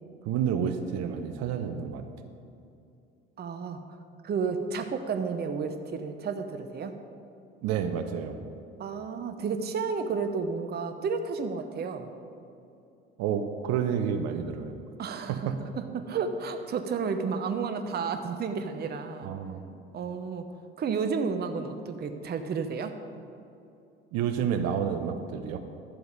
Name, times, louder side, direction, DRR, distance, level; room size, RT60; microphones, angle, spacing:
voice 1, 0.2-2.0 7.6-8.4 13.2-14.8 15.3-15.6 19.2-19.6 24.1-25.6, right 8 dB, 55° right, 7 dB, 0.9 m, -29 dB
voice 2, 3.4-3.8 4.2-7.0 8.8-12.1 15.0-19.3 19.9-20.4 20.8-23.0, right 5 dB, 30° right, 7 dB, 0.8 m, -32 dB
11.5 x 7.9 x 5.2 m, 2.6 s
figure-of-eight pair, 60°, 30 cm